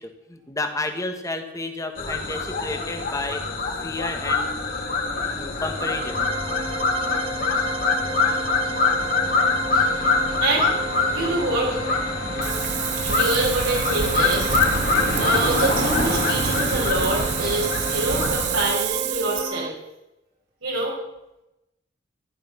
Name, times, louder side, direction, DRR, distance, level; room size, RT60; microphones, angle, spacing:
voice 1, 0.0-4.5 5.3-6.3, left 2 dB, 15° left, 6 dB, 1.6 m, -31 dB
sound 1, 2.0-18.6, left 3 dB, 50° left, 2.9 m, -24 dB
sound 2, 5.6-19.7, right 3 dB, 30° right, 1.0 m, -34 dB
voice 2, 10.4-10.7 11.0-11.7 13.0-14.5 15.2-19.7 20.6-20.9, right 2 dB, 85° right, -4 dB, 4.0 m, -26 dB
Wind, 12.4-19.4, right 9 dB, 60° right, 0.4 m, -28 dB
14.5 x 12.0 x 5.8 m, 0.93 s
head